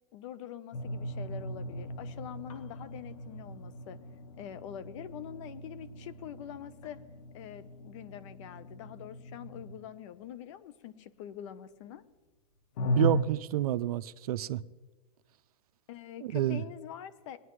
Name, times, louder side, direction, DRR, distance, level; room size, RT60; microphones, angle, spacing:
voice 1, 0.1-4.0 4.4-7.0 7.3-12.0 15.9-17.4, left 10 dB, 55° left, 0.9 m, -45 dB
sound 1, 0.7-10.2 12.8-13.2, equal, 70° left, 1.6 m, -37 dB
voice 2, 13.0-14.6 16.2-16.6, right 12 dB, 75° right, 0.6 m, -29 dB
21.5 x 9.8 x 3.2 m
supercardioid pair, 145°, 19 cm